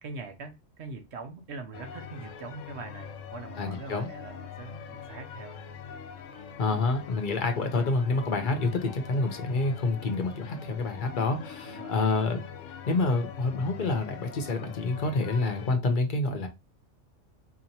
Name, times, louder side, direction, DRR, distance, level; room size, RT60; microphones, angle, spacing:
voice 1, 0.0-5.6 11.6-12.0, right 3 dB, 65° right, 1.0 m, -42 dB
sound 1, 1.7-15.8, left 6 dB, 80° left, 1.0 m, -43 dB
voice 2, 3.6-4.1 6.6-12.4 12.9-16.5, left 3 dB, 45° left, 0.8 m, -28 dB
4.3 x 2.9 x 2.7 m
omnidirectional pair, 1.3 m